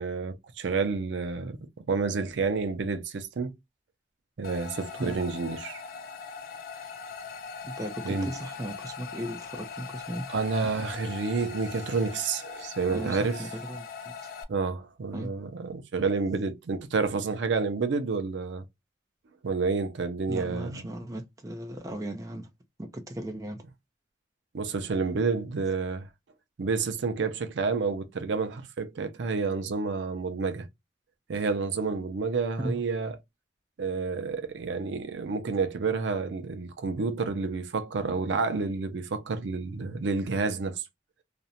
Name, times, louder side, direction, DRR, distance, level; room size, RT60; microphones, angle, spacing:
voice 1, 0.0-3.5 4.4-5.8 8.0-8.3 10.3-13.5 14.5-18.6 19.4-20.8 24.5-26.1 26.6-30.7 31.3-33.2 33.8-40.8, right 4 dB, 85° right, 0.5 m, -29 dB
sound 1, 4.4-14.4, left 5 dB, 50° left, 0.3 m, -41 dB
voice 2, 7.6-10.3 12.9-13.8 15.1-15.3 20.3-22.5 22.8-23.6 32.6-32.8, right 1 dB, 20° right, 0.4 m, -36 dB
2.5 x 2.1 x 2.7 m
head